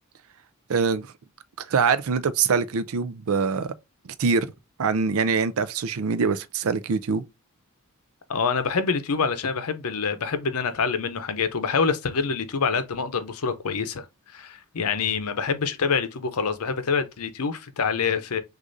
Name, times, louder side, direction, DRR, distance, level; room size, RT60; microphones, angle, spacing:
voice 1, 0.7-1.1 1.6-3.7 4.0-4.5 4.8-7.2, right 5 dB, 65° right, 0.4 m, -24 dB
voice 2, 8.3-14.1 14.3-18.4, left 5 dB, 80° left, 0.7 m, -26 dB
6.3 x 2.5 x 2.6 m
head